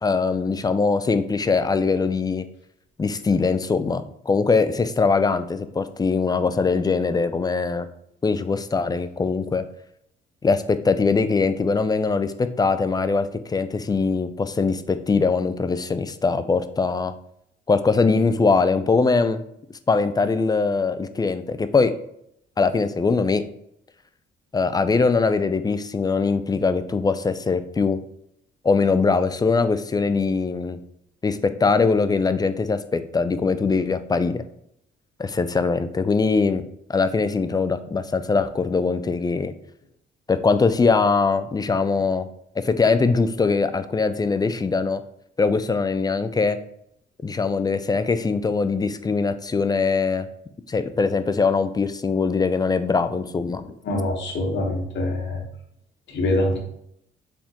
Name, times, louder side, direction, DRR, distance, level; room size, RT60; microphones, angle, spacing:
voice 1, 0.0-2.4 3.0-7.9 8.2-9.6 10.4-17.1 17.7-19.4 19.9-21.9 22.6-23.4 24.5-28.0 28.6-30.8 31.2-34.4 35.2-36.6 36.9-39.5 40.3-42.3 42.6-45.0 45.4-46.6 47.2-50.3 50.7-53.7, left 4 dB, 20° left, 11 dB, 0.3 m, -22 dB
voice 2, 53.8-55.4 56.1-56.6, left 1 dB, 65° left, 1 dB, 1.2 m, -24 dB
4.3 x 3.6 x 2.9 m, 0.73 s
cardioid pair, 90°, 20 cm